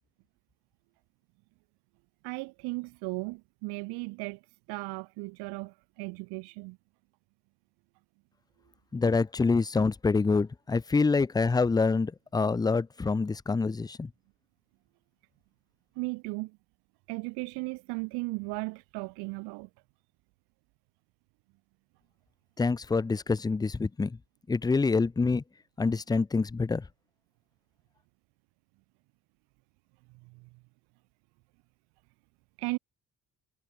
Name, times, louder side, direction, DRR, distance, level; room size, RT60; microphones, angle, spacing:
voice 1, 2.2-4.4 4.7-6.8 16.0-16.6 17.1-19.7 30.2-30.5 32.6-32.8, right 27 dB, 85° right, 0.5 m, -36 dB
voice 2, 8.9-14.1 22.6-24.2 24.5-25.4 25.8-26.8, left 4 dB, 10° left, 0.4 m, -26 dB
supercardioid pair, 60°, 38 cm